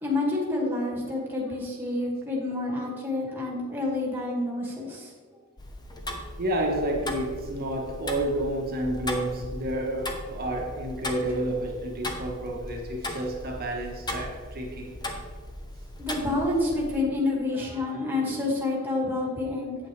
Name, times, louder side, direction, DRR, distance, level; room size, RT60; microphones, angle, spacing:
voice 1, 0.0-5.1 16.0-19.8, left 2 dB, 10° right, -3 dB, 2.1 m, -28 dB
Tick-tock, 5.6-17.0, left 1 dB, 20° left, 0.8 m, -38 dB
voice 2, 6.4-15.0, right 1 dB, 45° right, 1 dB, 1.3 m, -30 dB
8.6 x 8.4 x 3.3 m, 1.5 s
head